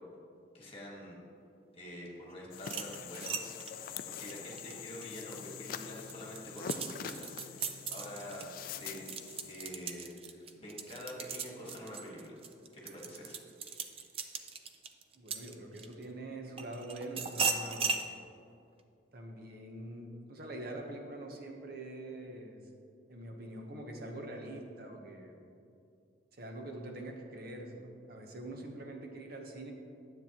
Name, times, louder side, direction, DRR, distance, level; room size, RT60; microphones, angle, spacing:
voice 1, 0.5-1.2 1.7-3.4 3.8-3.9 4.2-9.0 9.5-12.4 12.7-13.4, left 1 dB, 30° left, -3 dB, 1.6 m, -46 dB
sound 1, 2.5-9.5, left 7 dB, 50° left, 0.3 m, -44 dB
sound 2, 2.6-5.4 5.9-16.0 16.6-18.1, right 5 dB, 30° right, 0.4 m, -38 dB
voice 2, 15.1-18.2 19.1-22.6 23.1-25.4 26.3-29.7, right 1 dB, 55° right, 1 dB, 0.9 m, -44 dB
9.7 x 7.9 x 2.9 m, 2.5 s
head